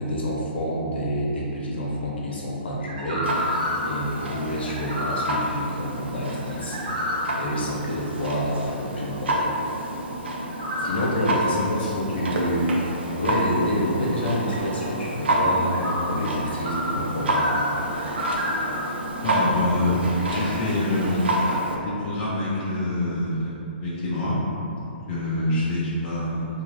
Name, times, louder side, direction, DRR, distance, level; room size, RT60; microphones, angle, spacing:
voice 1, 0.0-6.8 7.4-9.5 10.8-11.6 12.0-17.5, equal, 70° left, -4 dB, 0.9 m, -28 dB
sound 1, 2.9-3.9 4.7-5.3 6.5-7.3 10.5-11.0 15.6-16.0 16.5-16.9 17.2-18.8, equal, 40° right, 0.8 m, -29 dB
Clock, 3.2-21.8, right 1 dB, 75° right, 0.6 m, -29 dB
voice 2, 8.9-9.2 11.6-11.9 19.2-21.3 21.8-24.4 24.8-26.6, left 1 dB, 15° left, -8 dB, 0.4 m, -26 dB
3.9 x 2.7 x 3.1 m, 2.8 s
hypercardioid pair, 175°, 6 cm